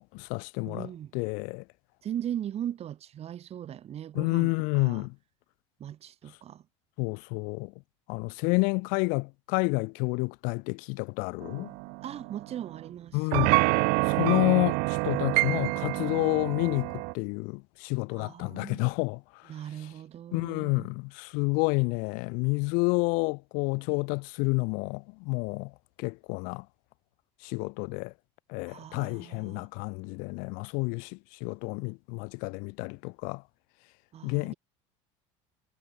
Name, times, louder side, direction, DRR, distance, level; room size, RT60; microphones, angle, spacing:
voice 1, 0.0-1.6 4.1-5.1 7.0-7.7 8.1-11.7 13.1-13.6 14.0-19.5 20.3-25.7 26.0-26.7 27.4-28.1 28.5-33.4 34.2-34.5, left 32 dB, 70° left, 1.3 m, -29 dB
voice 2, 0.7-1.1 2.0-5.1 5.8-6.6 12.0-13.7 18.1-18.8 19.5-20.9 28.7-29.7 34.1-34.5, right 10 dB, 45° right, 3.0 m, -39 dB
sound 1, 11.4-12.9 13.3-17.1, right 30 dB, 70° right, 1.4 m, -27 dB
supercardioid pair, 100°, 15 cm